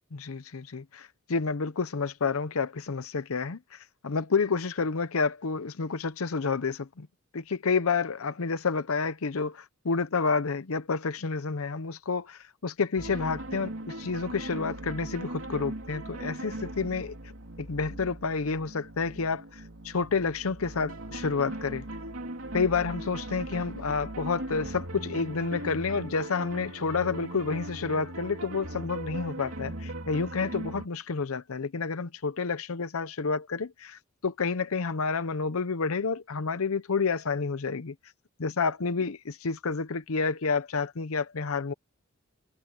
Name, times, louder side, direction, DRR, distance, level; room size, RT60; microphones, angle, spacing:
voice 1, 0.1-7.1 7.3-17.2 17.6-21.8 22.5-37.9 38.4-41.7, left 4 dB, 80° left, 0.7 m, -29 dB
sound 1, 13.0-30.9, right 1 dB, 70° right, 3.0 m, -39 dB
head